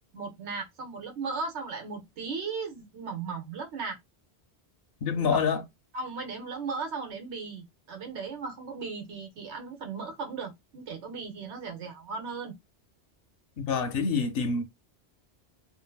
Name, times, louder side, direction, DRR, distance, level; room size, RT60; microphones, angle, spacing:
voice 1, 0.1-4.0 5.0-5.4 5.9-12.6, right 4 dB, 80° right, 1.1 m, -37 dB
voice 2, 5.0-5.6 13.6-14.6, left 5 dB, 65° left, 0.7 m, -26 dB
2.6 x 2.5 x 2.2 m
omnidirectional pair, 1.1 m